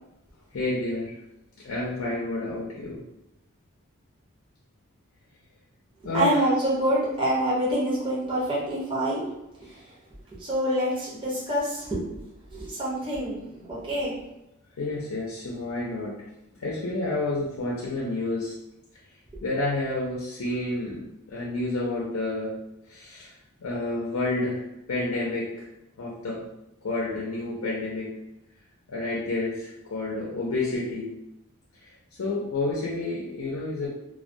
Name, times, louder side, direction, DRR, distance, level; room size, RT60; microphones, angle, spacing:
voice 1, 0.5-1.1 1.6-3.0 6.0-6.5 14.8-16.3 16.6-18.5 19.4-22.5 22.9-23.3 23.6-24.6 24.9-25.7 26.0-26.5 26.8-28.1 28.9-31.1 32.2-33.9, left 2 dB, 90° left, -4 dB, 0.5 m, -29 dB
voice 2, 6.1-9.3 9.6-9.8 10.4-12.0 12.5-14.1, right 1 dB, 20° right, -8 dB, 0.6 m, -26 dB
2.2 x 2.2 x 2.5 m, 0.88 s
head